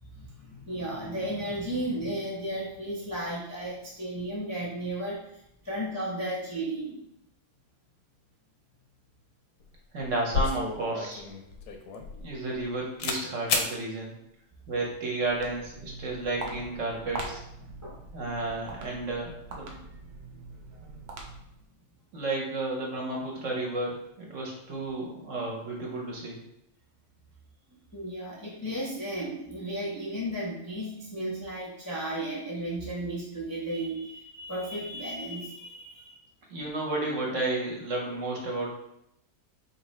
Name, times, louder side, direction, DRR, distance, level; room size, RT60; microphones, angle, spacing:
voice 1, 0.0-7.0 17.7-18.0 27.9-36.2, right 1 dB, 25° left, -6 dB, 0.5 m, -34 dB
sound 1, 9.6-9.7 10.0-12.7 13.0-13.2 13.5-13.7, left 4 dB, 85° left, 1.1 m, -30 dB
voice 2, 9.9-11.2 12.1-14.2 14.7-17.4 18.1-19.8 22.1-26.4 36.5-38.7, right 2 dB, 60° right, -1 dB, 1.1 m, -32 dB
Walk footsteps, 15.2-21.6, right 3 dB, 80° right, 1.2 m, -42 dB
4.1 x 3.1 x 3.1 m, 0.79 s
omnidirectional pair, 1.6 m